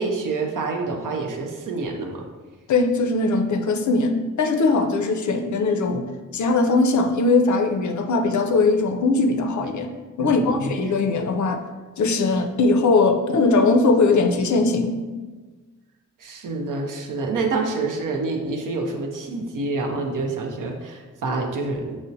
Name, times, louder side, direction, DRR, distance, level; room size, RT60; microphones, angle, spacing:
voice 1, 0.0-2.3 4.9-5.0 10.2-10.8 16.2-22.0, right 3 dB, 70° right, 2 dB, 0.6 m, -27 dB
voice 2, 2.7-9.9 10.2-11.6 12.0-15.0, left 3 dB, 60° left, 6 dB, 0.4 m, -20 dB
5.5 x 2.1 x 2.6 m, 1.3 s
cardioid pair, 80°, 33 cm